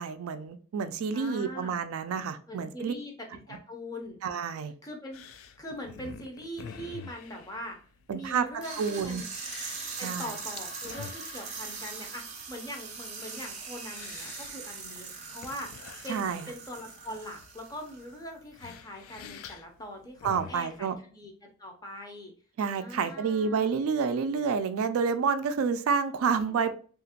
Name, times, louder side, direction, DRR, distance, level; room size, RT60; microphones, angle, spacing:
voice 1, 0.0-2.9 4.2-4.7 8.1-8.5 8.8-9.2 10.0-10.3 16.1-16.5 20.2-21.0 22.6-26.8, right 6 dB, 80° right, 0.3 m, -29 dB
voice 2, 1.1-1.8 2.5-4.2 4.8-5.2 5.6-7.8 8.1-9.2 10.0-22.3 22.8-23.8 26.2-26.7, equal, 15° left, 0.5 m, -42 dB
sound 1, 5.1-20.8, left 6 dB, 75° left, 0.3 m, -48 dB
sound 2, 8.6-18.4, right 5 dB, 30° right, 0.5 m, -41 dB
2.8 x 2.4 x 2.7 m
head